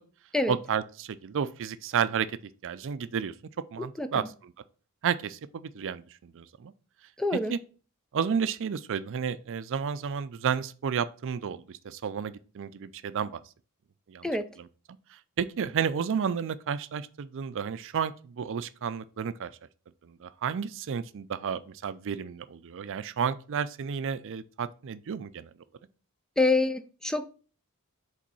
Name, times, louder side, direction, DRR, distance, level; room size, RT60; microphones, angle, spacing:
voice 1, 0.5-2.3 2.6-3.3 3.7-4.2 5.0-6.7 7.5-7.6 8.1-13.4 14.1-14.3 15.1-19.5 20.0-25.5, right 7 dB, 60° right, 0.4 m, -31 dB
voice 2, 4.0-4.3 7.2-7.5 14.2-14.5 26.4-27.3, left 2 dB, 5° left, 0.4 m, -26 dB
5.1 x 3.9 x 5.4 m
head